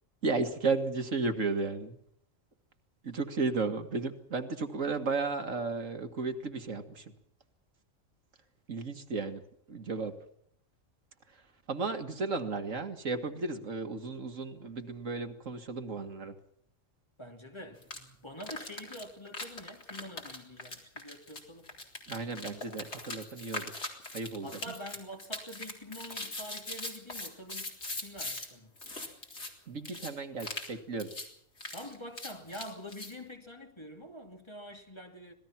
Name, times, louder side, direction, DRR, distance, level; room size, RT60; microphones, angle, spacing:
voice 1, 0.2-2.0 3.0-7.1 8.7-9.4 9.7-10.1 11.7-16.4 22.1-23.7 24.1-24.5 29.7-31.1, right 4 dB, 80° right, 2.3 m, -34 dB
voice 2, 17.2-21.7 24.4-27.7 28.0-28.8 31.7-35.3, equal, 20° left, 2.7 m, -46 dB
sound 1, 17.8-18.0 18.4-28.5 28.8-29.5 29.8-30.1 30.4-30.7 31.0-31.3 31.6-33.1, left 2 dB, 60° left, 4.2 m, -41 dB
25.5 x 18.5 x 5.9 m
omnidirectional pair, 1.3 m